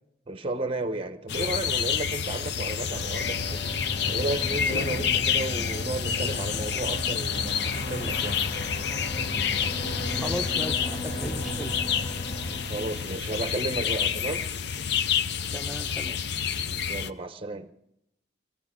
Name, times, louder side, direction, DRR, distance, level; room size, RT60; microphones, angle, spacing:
voice 1, 0.3-3.6 4.1-8.4 12.7-14.5 16.9-17.7, right 2 dB, 25° right, 0.8 m, -33 dB
sound 1, 1.3-17.1, left 7 dB, 55° left, 0.6 m, -29 dB
sound 2, 2.8-13.3, equal, 20° left, 2.7 m, -36 dB
voice 2, 10.2-11.7 15.5-16.2, equal, ahead, 0.9 m, -36 dB
20.5 x 15.5 x 3.6 m
head